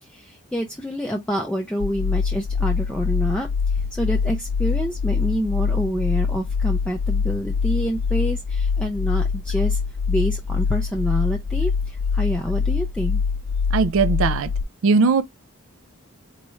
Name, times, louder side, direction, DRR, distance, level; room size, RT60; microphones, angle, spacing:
voice 1, 0.0-9.8 10.1-13.2, equal, 5° left, 0.4 m, -27 dB
sound 1, 1.8-14.6, left 5 dB, 80° left, 0.4 m, -24 dB
voice 2, 13.7-14.5 14.8-15.2, right 4 dB, 60° right, 0.4 m, -18 dB
4.1 x 2.3 x 3.1 m
head